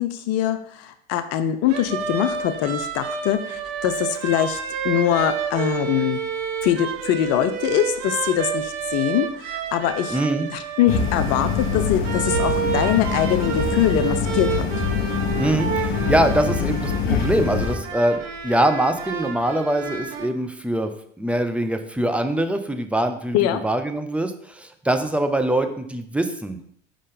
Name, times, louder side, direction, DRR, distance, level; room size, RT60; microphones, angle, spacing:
voice 1, 0.0-4.6 4.8-6.2 6.6-10.2 10.5-14.7 23.3-23.6, left 11 dB, 50° left, 10 dB, 0.6 m, -23 dB
sound 1, 1.7-20.3, right 7 dB, 60° right, 0.9 m, -30 dB
voice 2, 10.1-10.5 15.3-20.9 21.2-26.6, right 1 dB, 5° right, 6 dB, 0.6 m, -23 dB
sound 2, 10.9-17.8, left 5 dB, 70° left, 1.1 m, -24 dB
5.3 x 3.8 x 5.1 m, 0.66 s
hypercardioid pair, 80°, 31 cm